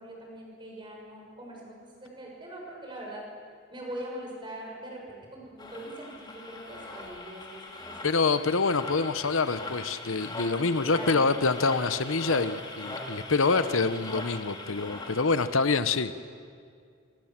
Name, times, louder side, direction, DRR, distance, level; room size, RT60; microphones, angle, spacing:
voice 1, 0.0-3.2 3.7-8.1 10.6-11.2, right 1 dB, 25° right, -1 dB, 6.7 m, -42 dB
sound 1, 5.6-15.6, left 2 dB, 20° left, 3.3 m, -40 dB
voice 2, 8.0-16.1, left 4 dB, 70° left, 12 dB, 1.0 m, -26 dB
26.5 x 25.5 x 7.5 m, 2.2 s
head